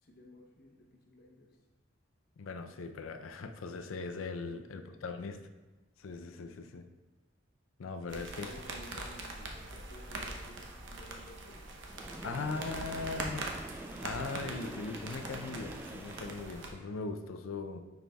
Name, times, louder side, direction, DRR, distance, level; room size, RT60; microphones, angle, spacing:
voice 1, 0.0-1.6 4.4-5.5 8.1-11.7, equal, 50° left, 0 dB, 0.9 m, -55 dB
voice 2, 2.4-5.4 6.0-6.9 7.8-8.5 12.2-13.5 14.0-17.8, left 4 dB, 80° left, 8 dB, 0.5 m, -39 dB
sound 1, 8.1-16.7, right 2 dB, 60° right, 0.7 m, -43 dB
Train, 11.9-16.9, right 1 dB, 10° right, 0.3 m, -46 dB
9.1 x 4.8 x 2.3 m, 1.2 s
head